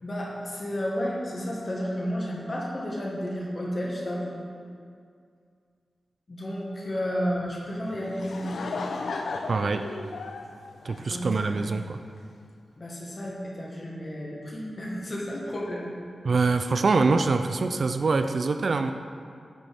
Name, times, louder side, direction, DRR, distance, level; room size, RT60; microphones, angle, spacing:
voice 1, 0.0-4.4 6.3-8.6 11.0-11.5 12.8-16.0, equal, 35° left, -4 dB, 1.5 m, -32 dB
Laughter / Crowd, 7.9-11.7, left 3 dB, 80° left, 0.6 m, -35 dB
voice 2, 9.5-9.8 10.8-12.0 16.2-18.9, right 4 dB, 50° right, 8 dB, 0.3 m, -24 dB
9.5 x 7.4 x 3.5 m, 2.3 s
wide cardioid pair, 160°, 0 cm